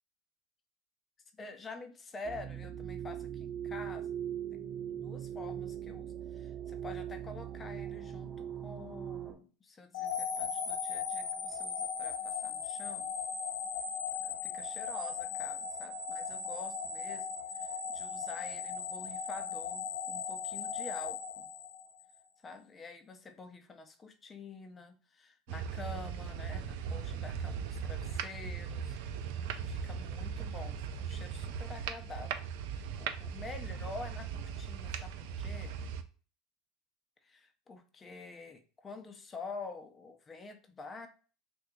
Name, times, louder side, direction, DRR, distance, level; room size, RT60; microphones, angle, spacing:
voice 1, 1.3-4.1 4.5-13.1 14.2-17.3 17.5-21.5 22.4-29.0 29.3-32.4 32.7-35.7 37.2-41.1, left 3 dB, 25° left, 7 dB, 0.6 m, -47 dB
sound 1, 2.2-9.3, right 10 dB, 30° right, 0.6 m, -40 dB
sound 2, 9.9-22.1, left 7 dB, 75° left, 0.7 m, -38 dB
sound 3, 25.5-36.0, right 7 dB, 70° right, 0.3 m, -38 dB
2.8 x 2.3 x 3.5 m, 0.37 s
hypercardioid pair, 90°, 0 cm